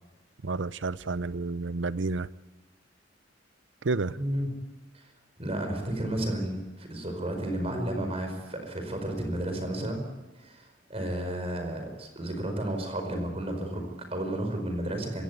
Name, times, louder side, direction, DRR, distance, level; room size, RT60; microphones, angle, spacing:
voice 1, 0.4-2.3 3.8-4.2, right 3 dB, 75° right, 0.7 m, -30 dB
voice 2, 4.2-4.5 4.9-5.1 5.4-10.0 10.4-15.2, right 1 dB, 30° right, 4.9 m, -32 dB
26.0 x 16.5 x 9.5 m
head